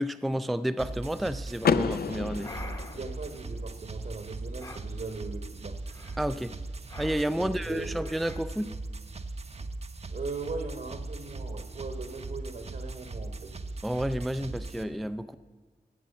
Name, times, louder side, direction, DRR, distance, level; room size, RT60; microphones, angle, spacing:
voice 1, 0.0-2.5 6.2-6.5 7.0-8.7 13.8-15.4, equal, ahead, 0.3 m, -30 dB
sound 1, 0.8-14.8, right 2 dB, 40° right, 0.7 m, -39 dB
Car / Door, 1.6-3.6, left 6 dB, 70° left, 0.4 m, -29 dB
sound 2, 2.4-3.1 4.6-4.9 5.9-6.3 6.9-7.4 8.0-8.4, left 2 dB, 20° left, 0.9 m, -44 dB
voice 2, 2.9-5.9 7.4-8.0 10.1-13.6, right 3 dB, 60° right, 1.2 m, -39 dB
13.5 x 6.2 x 8.3 m
wide cardioid pair, 105°, 16 cm